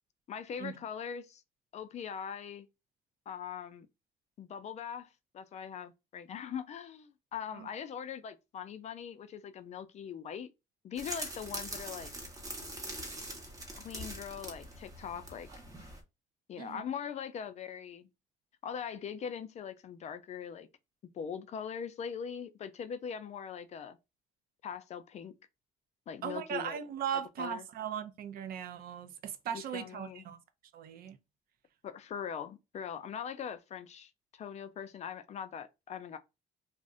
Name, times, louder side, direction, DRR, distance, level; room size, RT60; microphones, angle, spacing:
voice 1, 0.3-1.4 1.7-2.7 3.3-3.9 4.4-10.5 10.8-12.1 13.7-15.5 16.5-18.1 18.6-20.7 21.1-24.0 24.6-25.3 26.1-26.8 27.4-27.6 29.5-30.2 31.8-36.2, left 7 dB, 40° left, 0.4 m, -41 dB
sound 1, 11.0-16.0, right 1 dB, 20° right, 0.8 m, -43 dB
voice 2, 26.2-30.4 30.7-31.2, right 8 dB, 60° right, 0.5 m, -38 dB
2.5 x 2.1 x 3.6 m
cardioid pair, 110°, 17 cm